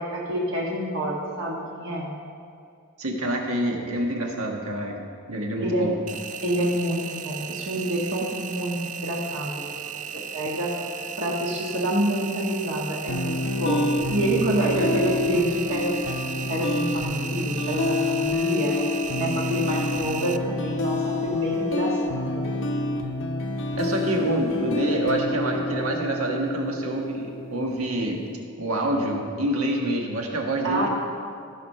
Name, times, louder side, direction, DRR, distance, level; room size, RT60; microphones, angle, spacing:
voice 1, 0.0-2.1 5.6-5.9 6.4-9.7 10.3-10.7 11.2-13.8 14.1-16.0 16.5-18.8 19.1-22.5 30.6-30.9, right 1 dB, 60° right, -3 dB, 1.6 m, -27 dB
voice 2, 3.0-5.0 5.3-6.0 14.7-15.0 23.8-28.2 28.6-30.9, right 1 dB, 80° right, 1 dB, 1.5 m, -27 dB
Engine, 6.1-20.4, right 8 dB, 35° right, 0.3 m, -36 dB
sound 1, 13.1-28.1, left 2 dB, 60° left, 0.7 m, -28 dB
15.5 x 5.3 x 5.5 m, 2.3 s
head